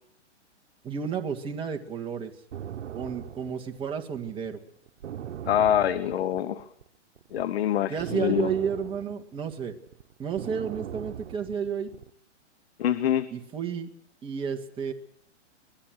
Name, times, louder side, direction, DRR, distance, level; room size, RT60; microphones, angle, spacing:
voice 1, 0.8-2.3 2.9-4.6 7.9-9.7 10.2-11.9 13.3-13.9 14.2-14.9, right 7 dB, 15° right, 3 dB, 1.9 m, -31 dB
sound 1, 2.5-6.9 7.2-12.1, right 10 dB, 80° right, 1.2 m, -39 dB
voice 2, 5.4-6.6 7.3-8.5 12.8-13.3, left 11 dB, 55° left, 13 dB, 1.3 m, -25 dB
25.0 x 20.5 x 6.4 m, 0.65 s
hypercardioid pair, 150°, 36 cm